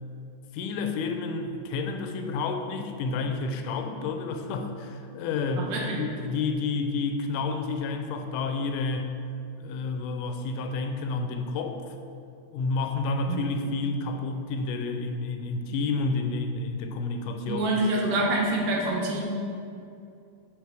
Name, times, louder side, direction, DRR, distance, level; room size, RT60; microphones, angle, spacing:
voice 1, 0.5-9.2 9.6-11.8 12.5-17.7, left 3 dB, 85° left, 6 dB, 2.1 m, -30 dB
voice 2, 5.6-6.0 13.3-13.4 17.5-19.2, right 2 dB, 85° right, -2 dB, 2.6 m, -26 dB
6.2 x 4.6 x 4.8 m, 2.5 s
omnidirectional pair, 3.6 m